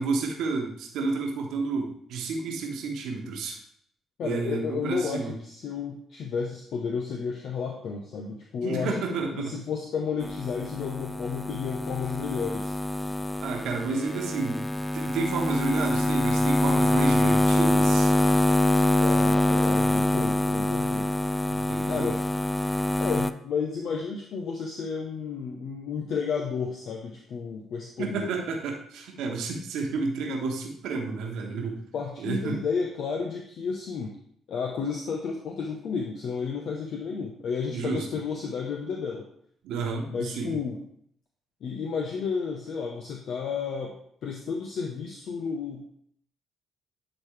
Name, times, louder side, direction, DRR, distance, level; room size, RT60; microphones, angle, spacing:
voice 1, 0.0-3.6 4.2-5.3 8.6-9.5 13.4-14.6 14.9-18.1 21.5-22.1 28.0-31.8 32.2-32.6 37.7-38.1 39.6-40.6, right 4 dB, 70° right, 1 dB, 1.2 m, -31 dB
voice 2, 4.2-9.0 9.2-12.7 19.0-21.1 21.8-22.2 23.0-28.3 31.9-34.1 34.5-39.3 40.1-40.8 41.6-44.0 44.2-45.9, left 5 dB, 60° left, 1 dB, 0.8 m, -32 dB
sound 1, 10.2-23.3, left 1 dB, 10° left, 0.4 m, -25 dB
10.0 x 4.0 x 3.2 m, 0.65 s
hypercardioid pair, 45°, 0 cm